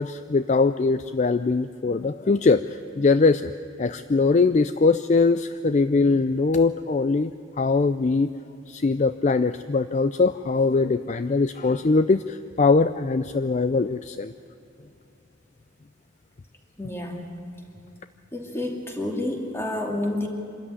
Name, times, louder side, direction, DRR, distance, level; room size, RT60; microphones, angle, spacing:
voice 1, 0.0-2.6 3.0-3.5 3.8-7.3 7.6-8.3 8.7-14.3, left 4 dB, 35° left, 12 dB, 0.4 m, -21 dB
voice 2, 16.8-17.3 18.3-20.3, left 1 dB, 15° left, 1 dB, 2.6 m, -29 dB
25.5 x 13.5 x 9.9 m, 2.7 s
head